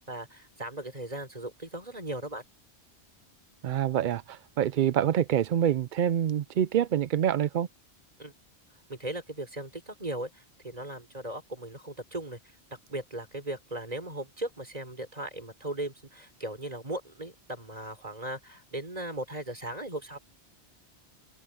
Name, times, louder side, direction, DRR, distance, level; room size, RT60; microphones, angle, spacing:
voice 1, 0.0-2.4 8.2-8.3 8.9-12.4 12.7-20.2, right 1 dB, 35° right, 4.1 m, -38 dB
voice 2, 3.6-7.7, right 10 dB, 60° right, 0.6 m, -26 dB
open air
omnidirectional pair, 1.1 m